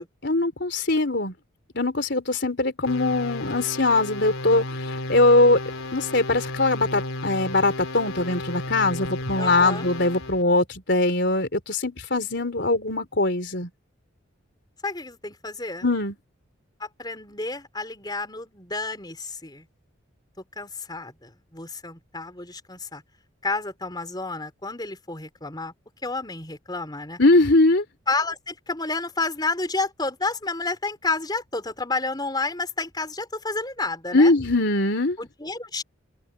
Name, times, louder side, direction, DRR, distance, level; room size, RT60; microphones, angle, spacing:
voice 1, 0.0-1.3 1.7-5.6 5.9-13.7 15.8-16.2 27.2-27.8 34.1-35.2, left 2 dB, 55° left, 3.9 m, -21 dB
sound 1, 2.9-10.4, left 2 dB, 90° left, 4.1 m, -33 dB
voice 2, 9.4-9.9 14.8-15.9 16.8-19.7 20.6-23.0 23.4-25.7 26.0-27.2 28.1-34.3 35.2-35.8, left 3 dB, 20° left, 4.1 m, -30 dB
open air
head